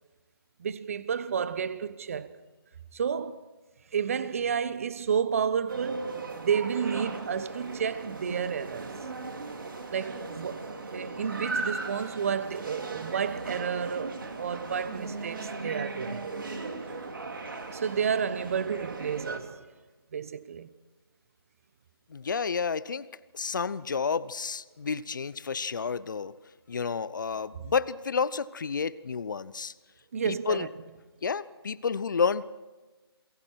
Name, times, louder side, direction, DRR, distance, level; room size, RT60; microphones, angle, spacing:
voice 1, 0.6-2.4 2.9-3.5 3.9-9.0 9.9-16.2 17.7-19.6 20.1-20.7 30.1-30.7, right 7 dB, 35° right, 1.0 m, -31 dB
sound 1, 5.7-19.4, right 3 dB, 55° right, 3.1 m, -37 dB
voice 2, 22.1-23.1 23.3-26.3 26.7-29.7 30.2-30.7 31.2-32.4, left 5 dB, 50° left, 0.8 m, -30 dB
29.0 x 23.0 x 4.6 m
figure-of-eight pair, 155°, 13 cm